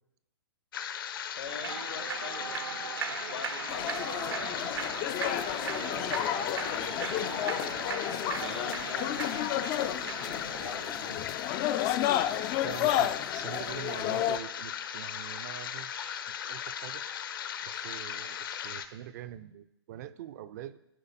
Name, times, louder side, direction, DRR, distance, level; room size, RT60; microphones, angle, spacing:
sound 1, 0.7-18.9, left 9 dB, 55° left, 0.7 m, -38 dB
voice 1, 1.3-2.6 3.3-7.9 8.3-9.2 9.6-11.3 12.6-13.0 17.7-17.9, left 6 dB, 70° left, 7 dB, 1.1 m, -44 dB
Human voice / Clapping / Cheering, 1.5-11.2, right 7 dB, 65° right, 0.8 m, -39 dB
sound 2, 3.7-14.4, left 12 dB, 20° left, 0.3 m, -32 dB
voice 2, 12.6-17.0 17.6-20.8, right 12 dB, 40° right, 15 dB, 0.5 m, -44 dB
13.5 x 5.1 x 4.2 m, 0.85 s
figure-of-eight pair, 125°, 14 cm